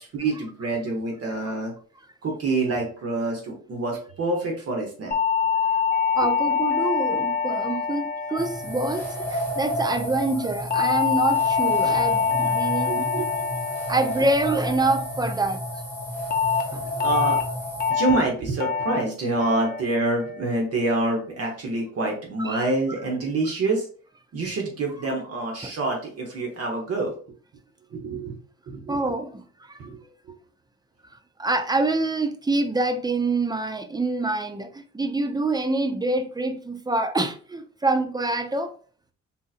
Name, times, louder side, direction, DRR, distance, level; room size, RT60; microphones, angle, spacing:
voice 1, 0.0-1.7 2.2-5.2 12.9-13.5 17.0-17.4 17.9-23.9 24.3-27.1 27.9-28.4 28.7-29.1 29.8-30.0, right 2 dB, 50° right, 1.0 m, -27 dB
sound 1, 5.1-9.6 10.7-15.2 16.3-16.6 17.0-17.4 17.8-18.2 18.6-19.0 19.4-19.8 20.2-20.6, left 6 dB, 30° left, 0.6 m, -25 dB
voice 2, 6.1-13.1 13.9-15.6 16.7-16.8 22.5-22.7 25.6-25.7 28.9-29.8 31.4-38.7, right 2 dB, 15° right, 0.4 m, -26 dB
sound 2, 8.3-17.9, equal, 5° left, 1.2 m, -31 dB
3.7 x 2.7 x 2.4 m
cardioid pair, 90°, 30 cm